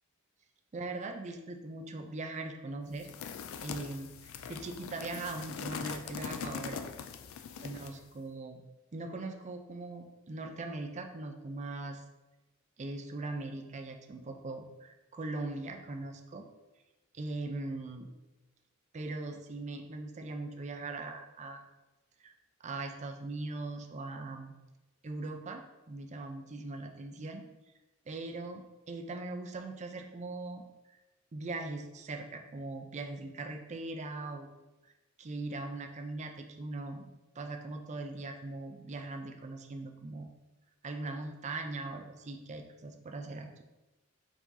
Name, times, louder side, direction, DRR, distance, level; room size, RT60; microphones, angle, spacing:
voice 1, 0.7-3.1 3.6-6.8 7.6-8.6 8.9-12.0 12.8-16.5 17.1-18.1 18.9-21.6 22.2-22.3 22.6-24.5 25.0-27.4 28.1-30.6 31.3-34.5 34.8-34.9 35.2-37.1 37.4-40.3 40.8-43.6, right 2 dB, 35° right, 4 dB, 0.4 m, -40 dB
sound 1, 3.0-8.0, left 6 dB, 70° left, 0.3 m, -42 dB
4.7 x 3.8 x 2.6 m, 1.1 s
head